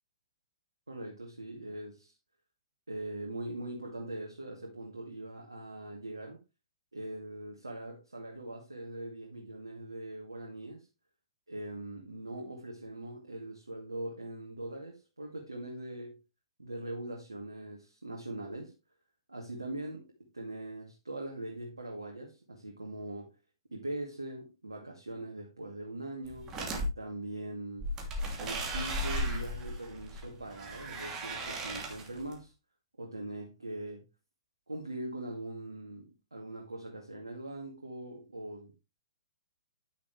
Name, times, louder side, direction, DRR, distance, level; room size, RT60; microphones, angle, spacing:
voice 1, 0.9-2.1 2.9-6.4 6.9-10.9 11.5-16.2 16.6-18.7 19.3-23.4 23.7-26.6 27.0-27.9 28.4-32.5 33.0-34.1 34.7-38.8, right 1 dB, 80° right, 2.2 m, -41 dB
sound 1, 26.3-26.9 27.8-32.3, right 1 dB, 20° right, 2.7 m, -36 dB
10.0 x 8.1 x 3.2 m
figure-of-eight pair, 120°, 2 cm